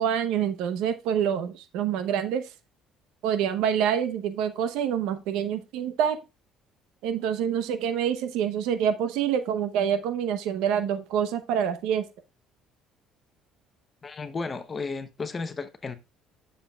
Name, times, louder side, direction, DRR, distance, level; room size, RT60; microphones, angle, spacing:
voice 1, 0.0-2.5 3.2-6.2 7.0-12.0, right 8 dB, 85° right, 0.8 m, -26 dB
voice 2, 14.0-16.0, left 4 dB, 25° left, 0.8 m, -33 dB
10.0 x 6.8 x 2.3 m
cardioid pair, 135°, 0 cm